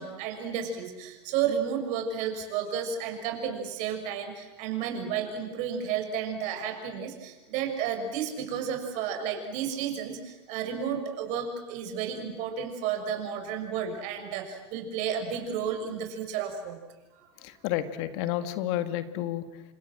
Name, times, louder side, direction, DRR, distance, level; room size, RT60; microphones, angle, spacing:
voice 1, 0.0-16.8 17.1-17.3, right 7 dB, 60° right, 5 dB, 6.6 m, -32 dB
voice 2, 17.4-19.6, left 12 dB, 65° left, 10 dB, 2.2 m, -31 dB
29.0 x 26.5 x 7.7 m, 1.1 s
hypercardioid pair, 90°, 15 cm